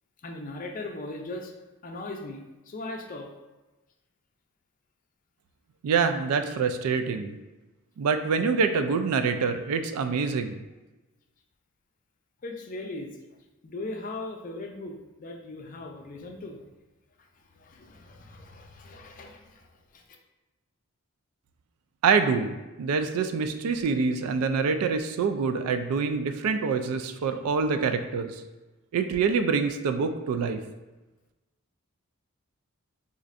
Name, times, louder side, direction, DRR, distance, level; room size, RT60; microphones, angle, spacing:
voice 1, 0.2-1.5 1.8-3.3 12.4-13.2 13.6-16.6 17.5-20.0, left 2 dB, 35° left, 2 dB, 0.4 m, -39 dB
voice 2, 5.8-7.3 8.0-10.6 22.0-28.4 28.9-30.6, right 5 dB, 80° right, 9 dB, 0.3 m, -26 dB
4.1 x 2.5 x 2.4 m, 1.1 s
head